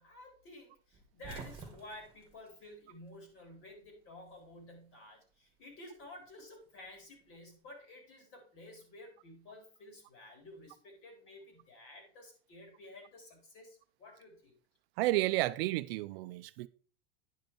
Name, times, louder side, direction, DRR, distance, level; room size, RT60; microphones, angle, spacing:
voice 1, 0.0-14.6, left 1 dB, 40° left, 3.6 m, -52 dB
sound 1, 0.9-3.5 3.7-4.8 6.0-7.5, right 4 dB, 15° right, 1.9 m, -51 dB
voice 2, 15.0-16.7, right 18 dB, 65° right, 0.5 m, -31 dB
10.0 x 5.3 x 4.4 m
supercardioid pair, 145°, 32 cm